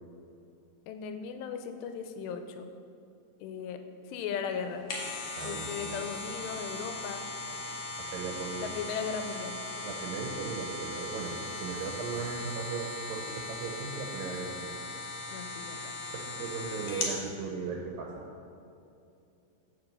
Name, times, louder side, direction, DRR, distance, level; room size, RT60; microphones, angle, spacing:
voice 1, 0.9-2.7 3.4-4.9 5.4-7.3 8.6-9.6 15.3-15.9 16.4-16.5, left 6 dB, 85° left, 7 dB, 2.7 m, -37 dB
sound 1, 4.6-17.2 17.6-17.7, left 2 dB, 65° left, 1.8 m, -38 dB
voice 2, 5.4-6.0 8.0-8.6 9.8-11.3 11.6-14.7 16.1-18.2, right 5 dB, 80° right, 0 dB, 2.0 m, -37 dB
7.4 x 6.9 x 5.3 m, 2.6 s
omnidirectional pair, 4.8 m